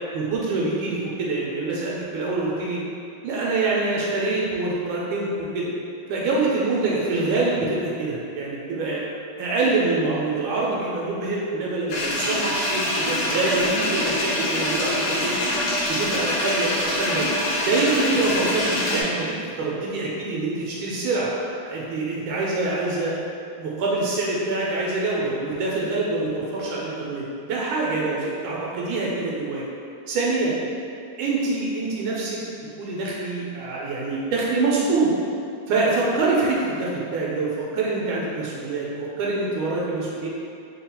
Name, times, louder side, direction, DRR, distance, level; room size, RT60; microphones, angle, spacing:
voice 1, 0.1-2.8 3.2-5.7 6.1-9.0 9.4-15.3 15.9-17.3 17.6-21.3 21.6-23.2 23.6-29.6 30.1-30.6 31.2-32.4 32.8-35.1 35.7-40.3, right 3 dB, 85° right, -5 dB, 1.4 m, -25 dB
sound 1, 11.9-19.0, left 1 dB, 65° left, 1.3 m, -25 dB
3.5 x 2.2 x 4.2 m, 2.7 s
omnidirectional pair, 2.2 m